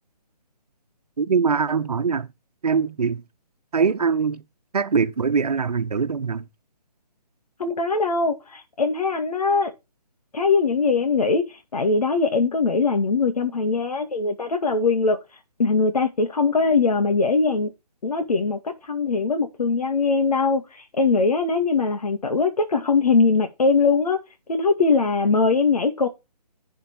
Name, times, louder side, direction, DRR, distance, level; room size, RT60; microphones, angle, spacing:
voice 1, 1.2-2.3 2.6-3.2 3.7-4.4 4.7-6.4, right 5 dB, 65° right, 1.3 m, -22 dB
voice 2, 7.6-9.7 10.3-15.2 15.6-17.7 18.0-24.2 24.5-26.1, left 4 dB, 65° left, 2.2 m, -21 dB
11.5 x 5.0 x 4.7 m
hypercardioid pair, 165°, 21 cm